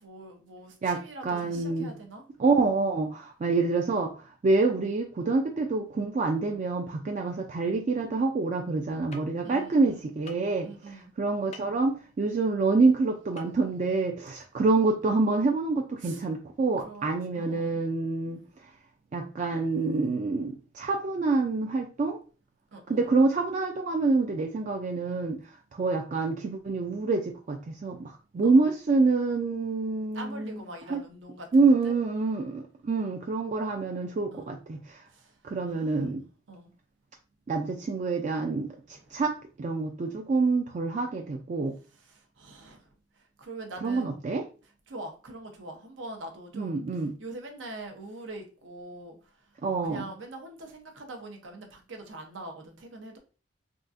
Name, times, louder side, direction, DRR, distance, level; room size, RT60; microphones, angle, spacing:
voice 1, 0.0-2.2 9.4-10.1 10.6-11.1 16.0-16.2 16.8-17.8 22.7-23.1 28.4-28.7 30.1-31.9 34.3-34.5 35.1-35.3 35.7-36.1 36.5-36.7 39.1-39.2 41.9-42.9 43.2-44.2 44.9-49.2 49.8-53.2, right 2 dB, 85° right, 4 dB, 0.8 m, -43 dB
voice 2, 0.8-2.0 2.4-18.4 19.1-22.2 22.9-25.4 25.7-30.6 30.9-31.0 31.5-35.0 35.4-36.2 37.5-38.7 39.1-41.8 43.8-44.4 46.5-47.1 49.6-50.1, right 3 dB, 40° right, 2 dB, 0.3 m, -27 dB
sound 1, 9.1-9.2 10.3-10.5 11.5-11.7 13.4-13.5 13.8-13.9, left 3 dB, 35° left, 0.5 m, -45 dB
3.7 x 2.4 x 2.5 m, 0.35 s
head